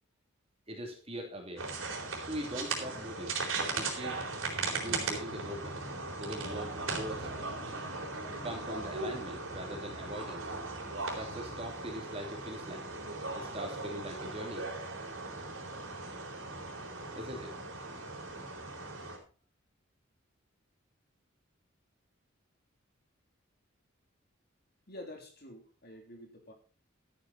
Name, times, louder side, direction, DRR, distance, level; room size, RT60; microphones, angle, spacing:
voice 1, 0.7-1.7 2.2-4.2 4.8-5.8 6.2-7.3 8.4-10.5 11.1-12.9 13.3-14.7 17.1-17.6, equal, 30° right, 2 dB, 3.1 m, -42 dB
sound 1, 1.6-19.2, right 3 dB, 85° right, 4.0 m, -38 dB
voice 2, 24.9-26.5, left 1 dB, 50° left, 3 dB, 3.3 m, -48 dB
13.0 x 9.4 x 4.3 m, 0.38 s
head